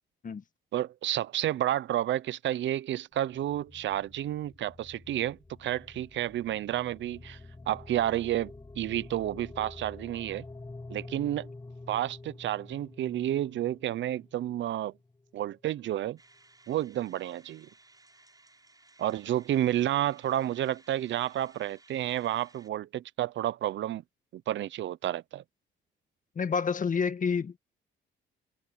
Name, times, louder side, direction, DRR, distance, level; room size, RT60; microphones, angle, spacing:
voice 1, 0.7-7.4 7.7-10.4 10.9-11.5 11.9-14.9 15.3-16.2 16.7-17.7 19.0-24.0 24.3-25.4, right 12 dB, 70° right, 0.7 m, -30 dB
sound 1, 3.1-15.4, left 2 dB, 20° left, 6.5 m, -48 dB
sound 2, 16.2-22.7, right 2 dB, 20° right, 7.6 m, -60 dB
voice 2, 26.3-27.6, left 6 dB, 40° left, 1.5 m, -28 dB
cardioid pair, 90°, 20 cm